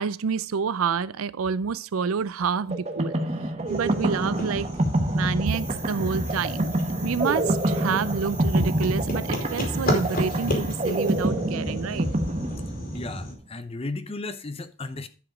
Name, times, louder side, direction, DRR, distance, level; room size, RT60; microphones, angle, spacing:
voice 1, 0.0-3.2 3.7-4.7 5.1-6.7 7.0-12.1, right 6 dB, 85° right, 0.5 m, -28 dB
sound 1, 2.7-13.2, right 1 dB, 30° right, 1.1 m, -27 dB
sound 2, 3.7-13.3, equal, 45° left, 2.6 m, -33 dB
sound 3, 5.5-11.3, right 4 dB, 10° right, 0.8 m, -42 dB
voice 2, 12.9-15.1, left 2 dB, 30° left, 0.7 m, -34 dB
11.0 x 5.0 x 4.9 m
head